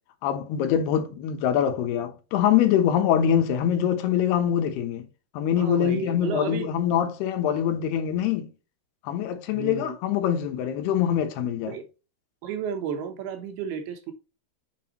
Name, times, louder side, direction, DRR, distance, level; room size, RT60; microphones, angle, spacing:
voice 1, 0.2-5.1 5.3-8.5 9.0-11.8, left 9 dB, 80° left, 3.0 m, -24 dB
voice 2, 5.6-6.7 9.5-9.9 11.7-11.9 12.4-14.1, right 7 dB, 75° right, 3.1 m, -32 dB
8.2 x 5.8 x 3.0 m
omnidirectional pair, 4.7 m